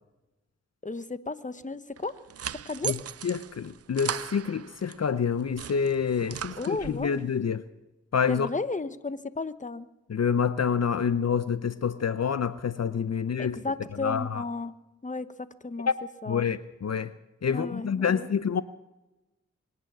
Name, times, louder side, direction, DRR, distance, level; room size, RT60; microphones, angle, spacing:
voice 1, 0.8-2.1 2.5-2.9 6.6-7.2 8.3-9.9 13.4-14.7 15.0-15.3 15.6-15.9 16.2-16.5 17.5-18.3, left 3 dB, 25° left, 13 dB, 1.0 m, -33 dB
sound 1, 2.0-5.0 5.4-7.1, right 9 dB, 55° right, 0.4 m, -38 dB
voice 2, 3.2-7.6 8.1-8.5 10.1-13.6 14.0-14.4 15.9-16.0 16.3-17.1 17.4-18.6, left 6 dB, 60° left, 14 dB, 0.7 m, -27 dB
24.0 x 9.8 x 6.1 m, 1.0 s
cardioid pair, 40°, 29 cm